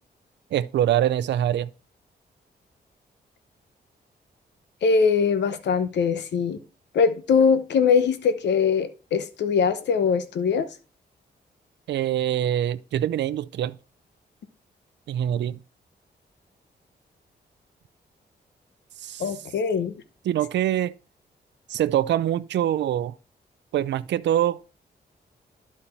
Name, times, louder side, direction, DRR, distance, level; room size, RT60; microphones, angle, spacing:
voice 1, 0.5-1.7 11.9-13.8 15.1-15.6 19.0-19.2 20.3-20.9 21.7-23.1 23.7-24.7, right 11 dB, 85° right, 0.4 m, -24 dB
voice 2, 4.8-6.6 6.9-10.7 19.2-19.9, left 5 dB, 80° left, 0.8 m, -22 dB
11.5 x 4.2 x 4.3 m
cardioid pair, 85°, 18 cm